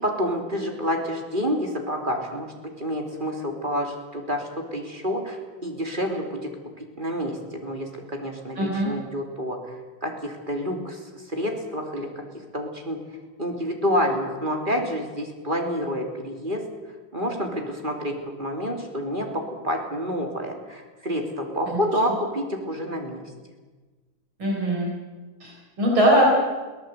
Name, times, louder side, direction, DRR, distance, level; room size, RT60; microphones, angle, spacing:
voice 1, 0.0-2.5 2.8-6.4 7.0-9.6 10.0-11.0 11.3-12.2 12.5-13.0 13.4-16.6 17.1-23.2, equal, 25° right, 2 dB, 3.0 m, -28 dB
voice 2, 8.6-8.9 21.7-21.8 24.4-24.9 25.4-26.3, equal, 75° right, -2 dB, 5.5 m, -21 dB
22.5 x 17.5 x 8.0 m, 1.3 s
omnidirectional pair, 2.3 m